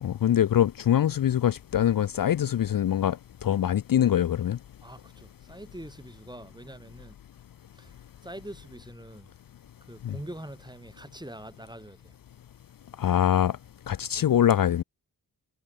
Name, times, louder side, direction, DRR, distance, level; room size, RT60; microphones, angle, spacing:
voice 1, 0.0-4.6 10.0-10.2 13.0-13.6 13.9-14.8, left 10 dB, 60° left, 0.6 m, -24 dB
voice 2, 4.8-7.1 7.7-7.9 8.2-9.3 9.9-12.1, right 1 dB, 10° right, 5.1 m, -44 dB
cardioid pair, 55°, 39 cm